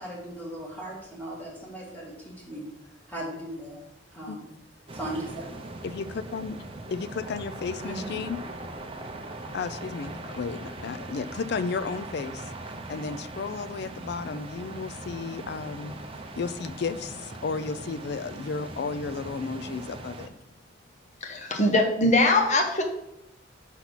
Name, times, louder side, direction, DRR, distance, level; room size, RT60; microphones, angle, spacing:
voice 1, 0.0-2.6 3.1-3.8 4.1-4.5 4.9-5.5 7.8-8.2, right 1 dB, 10° left, -3 dB, 1.9 m, -37 dB
sound 1, 4.9-20.3, right 2 dB, 30° right, 0.6 m, -40 dB
voice 2, 5.8-6.6 6.9-8.4 9.5-12.5 12.9-16.0 16.4-20.3, left 5 dB, 60° left, 14 dB, 0.4 m, -33 dB
voice 3, 21.2-22.8, left 2 dB, 40° left, 3 dB, 1.0 m, -22 dB
5.7 x 4.0 x 6.1 m, 0.85 s
head